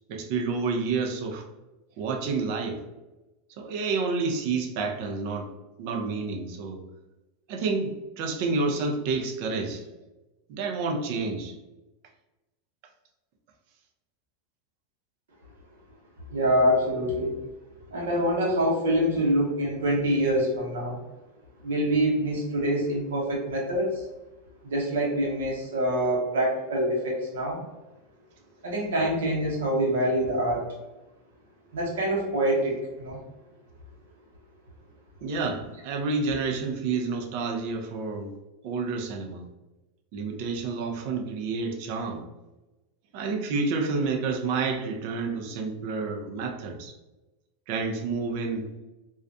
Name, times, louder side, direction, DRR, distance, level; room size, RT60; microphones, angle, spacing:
voice 1, 0.1-1.4 2.0-2.8 3.6-5.5 5.8-6.8 7.5-9.8 10.5-11.6 35.2-38.3 38.6-39.4 40.1-42.2 43.1-46.9 47.7-48.7, right 4 dB, 60° right, 4 dB, 0.5 m, -29 dB
voice 2, 16.3-17.4 17.9-21.0 21.6-24.0 24.6-27.6 28.6-30.6 31.7-33.2, equal, 85° right, -3 dB, 0.9 m, -25 dB
2.3 x 2.2 x 2.5 m, 1.0 s
hypercardioid pair, 110°, 0 cm